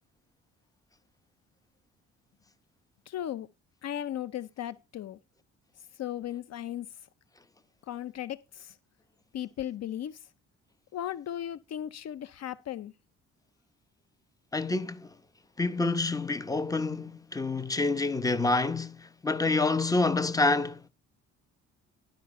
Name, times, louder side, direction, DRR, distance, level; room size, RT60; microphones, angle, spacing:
voice 1, 3.1-3.5 3.8-5.2 6.0-6.9 7.9-8.8 9.3-10.2 10.9-12.9, left 11 dB, 60° left, 0.6 m, -36 dB
voice 2, 14.5-15.2 15.6-20.9, left 3 dB, 10° left, 0.9 m, -27 dB
12.0 x 5.2 x 5.3 m
cardioid pair, 90°, 30 cm